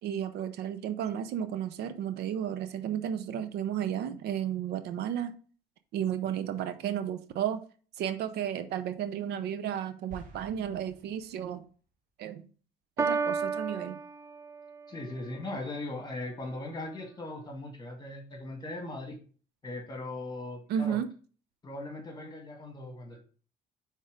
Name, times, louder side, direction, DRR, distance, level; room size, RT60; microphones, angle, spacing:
voice 1, 0.0-5.3 5.9-7.6 8.0-11.6 12.2-12.4 13.0-14.0 20.7-21.1, right 9 dB, 75° right, 0.7 m, -33 dB
sound 1, 10.1-11.7, right 3 dB, 50° right, 1.9 m, -51 dB
Piano, 13.0-15.0, right 5 dB, 15° right, 0.4 m, -32 dB
voice 2, 14.9-19.2 19.6-21.0 21.6-23.2, left 2 dB, 25° left, 1.6 m, -39 dB
5.4 x 3.6 x 5.0 m
cardioid pair, 110°, 17 cm